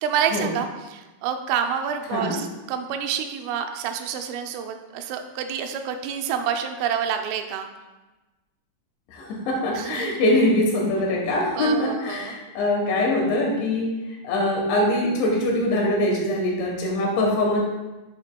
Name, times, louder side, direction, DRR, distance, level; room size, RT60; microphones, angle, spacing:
voice 1, 0.0-7.7 9.8-10.2 11.6-12.4, right 8 dB, 90° right, 6 dB, 3.2 m, -28 dB
voice 2, 9.1-13.9 14.2-17.6, left 1 dB, 75° left, -1 dB, 3.3 m, -23 dB
9.4 x 6.8 x 2.2 m, 1.1 s
omnidirectional pair, 5.7 m